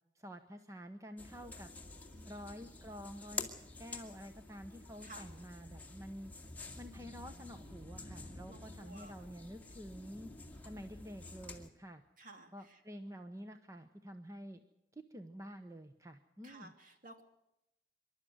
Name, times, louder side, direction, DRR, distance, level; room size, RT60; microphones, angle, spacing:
voice 1, 0.1-1.7 2.2-3.5 3.8-6.3 6.8-10.3 10.6-12.0 12.5-14.6 14.9-16.7, equal, 20° right, 7 dB, 0.9 m, -49 dB
sound 1, 1.2-11.7, left 3 dB, 10° left, 2.3 m, -49 dB
voice 2, 2.1-2.4 5.0-5.3 8.5-9.1 12.2-12.8 16.4-17.2, right 2 dB, 50° right, 5 dB, 2.9 m, -55 dB
26.0 x 12.5 x 9.4 m, 0.87 s
head